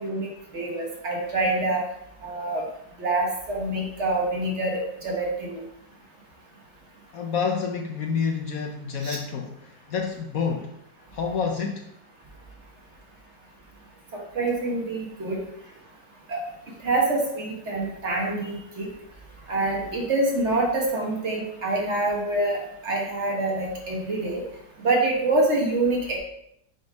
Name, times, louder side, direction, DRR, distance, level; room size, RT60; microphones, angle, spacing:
voice 1, 0.0-1.8 2.2-2.6 3.0-5.6 9.0-9.2 14.3-15.4 16.3-16.4 16.8-18.9 19.5-22.6 22.8-24.4 24.8-26.2, right 2 dB, 45° right, -1 dB, 1.4 m, -26 dB
voice 2, 7.1-10.7 11.1-11.9, left 5 dB, 65° left, 2 dB, 1.0 m, -28 dB
6.2 x 3.5 x 5.2 m, 0.77 s
omnidirectional pair, 1.8 m